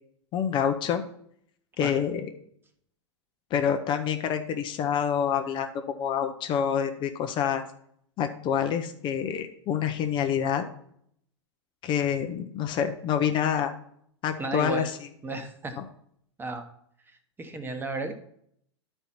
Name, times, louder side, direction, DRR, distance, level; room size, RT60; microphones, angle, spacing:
voice 1, 0.3-1.0 1.8-2.3 3.5-5.7 6.0-7.6 8.2-10.6 11.8-13.7 14.2-14.9, left 8 dB, 30° left, 6 dB, 0.7 m, -27 dB
voice 2, 14.4-14.9 15.2-15.8 16.4-16.6 17.1-18.1, right 3 dB, 15° right, 7 dB, 1.1 m, -34 dB
11.5 x 4.5 x 4.3 m, 0.68 s
figure-of-eight pair, 95°, 15 cm